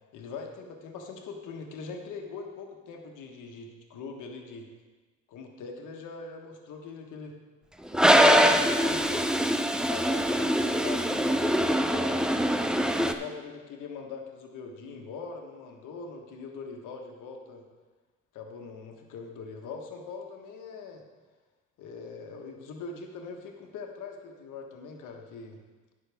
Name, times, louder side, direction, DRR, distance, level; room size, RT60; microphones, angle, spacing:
voice 1, 0.1-4.7 5.3-7.4 7.9-9.4 9.9-12.2 13.0-17.6 18.3-21.0 21.8-25.6, left 4 dB, 85° left, 2 dB, 1.3 m, -42 dB
Toilet flush, 7.9-13.1, equal, ahead, 0.5 m, -23 dB
16.0 x 5.9 x 3.5 m, 1.3 s
cardioid pair, 90°, 30 cm